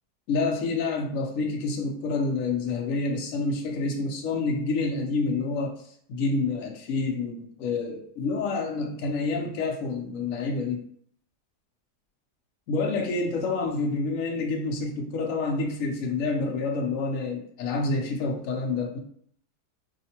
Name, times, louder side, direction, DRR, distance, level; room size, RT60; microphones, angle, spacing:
voice 1, 0.3-5.7 6.1-10.8 12.7-19.0, left 3 dB, 65° left, 2 dB, 0.9 m, -28 dB
4.7 x 2.1 x 2.9 m, 0.63 s
omnidirectional pair, 1.8 m